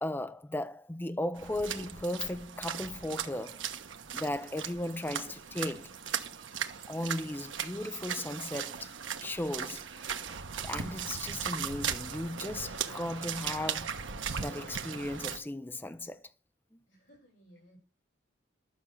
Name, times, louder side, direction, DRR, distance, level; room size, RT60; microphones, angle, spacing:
voice 1, 0.0-3.8 4.1-5.9 6.9-8.9 9.2-9.9 10.6-14.0 14.4-16.2 16.7-16.8, left 1 dB, 10° left, 0.5 m, -36 dB
sound 1, 1.3-15.4, right 7 dB, 80° right, 1.2 m, -38 dB
voice 2, 16.9-17.8, equal, 60° left, 6.1 m, -59 dB
12.5 x 7.0 x 6.4 m
head